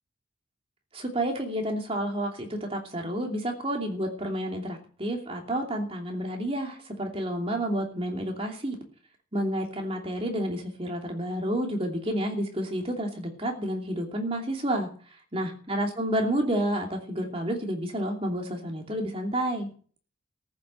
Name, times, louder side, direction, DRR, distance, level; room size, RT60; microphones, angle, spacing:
voice 1, 0.9-8.7 9.3-14.9 15.3-19.7, right 1 dB, 30° right, 2 dB, 2.9 m, -30 dB
14.0 x 7.6 x 7.7 m, 0.43 s
head